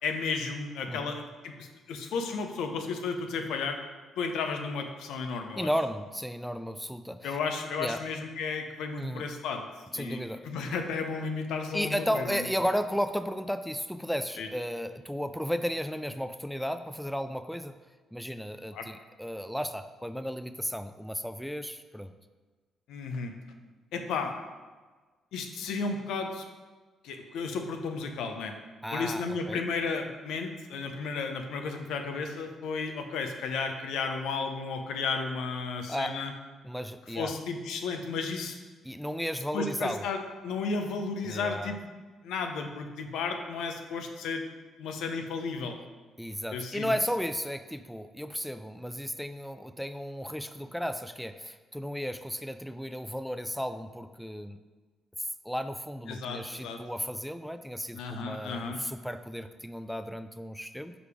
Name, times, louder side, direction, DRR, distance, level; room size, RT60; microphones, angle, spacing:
voice 1, 0.0-3.8 4.2-5.7 7.2-9.7 9.9-12.4 14.4-14.5 18.7-18.9 22.9-23.3 23.9-24.3 25.3-26.4 27.0-28.5 28.9-36.3 37.1-38.6 39.5-41.8 42.2-44.4 44.8-45.8 46.5-46.9 56.1-56.8 57.9-58.8, left 4 dB, 85° left, 5 dB, 0.7 m, -33 dB
voice 2, 5.6-7.4 7.8-8.0 9.0-9.2 9.9-10.5 11.7-17.8 18.1-22.1 28.8-29.7 35.9-36.1 36.6-37.3 38.8-40.0 41.2-41.8 46.2-54.6 55.2-60.9, equal, ahead, 10 dB, 0.3 m, -34 dB
5.0 x 5.0 x 4.9 m, 1.3 s
cardioid pair, 90°, 0 cm